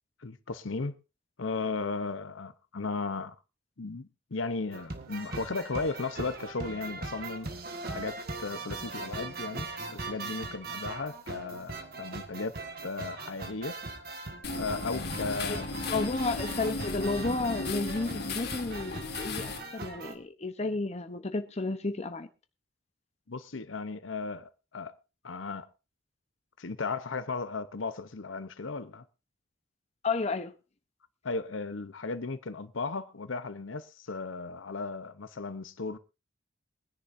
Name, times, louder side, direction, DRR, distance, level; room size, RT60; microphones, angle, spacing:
voice 1, 0.2-0.9 1.4-3.3 3.8-7.5 7.9-9.7 9.9-12.6 12.8-13.8 14.6-16.0 23.3-25.0 25.2-25.7 26.6-29.0 31.2-36.0, left 3 dB, 80° left, 0.9 m, -35 dB
sound 1, 4.7-20.2, right 3 dB, 50° right, 1.7 m, -40 dB
sound 2, 14.4-19.6, left 3 dB, 55° left, 2.4 m, -35 dB
voice 2, 15.9-22.3 30.0-30.5, left 3 dB, 35° left, 0.9 m, -32 dB
23.0 x 10.0 x 2.7 m
head